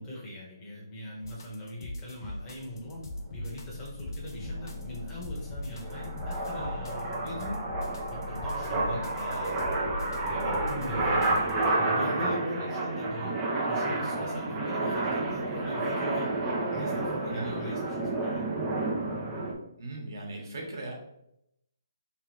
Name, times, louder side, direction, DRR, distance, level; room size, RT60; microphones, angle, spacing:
voice 1, 0.0-3.0 3.3-7.6 8.1-9.8 10.3-11.3 11.8-13.4 13.6-16.3 16.7-18.4, left 1 dB, 15° left, -5 dB, 1.3 m, -40 dB
sound 1, 1.2-11.7, left 2 dB, 55° left, 0.7 m, -40 dB
sound 2, 4.2-19.5, right 2 dB, 15° right, 0.6 m, -30 dB
voice 2, 17.1-17.7 19.8-20.9, right 2 dB, 65° right, 0 dB, 1.3 m, -39 dB
3.4 x 3.2 x 3.2 m, 0.79 s
hypercardioid pair, 155°, 2 cm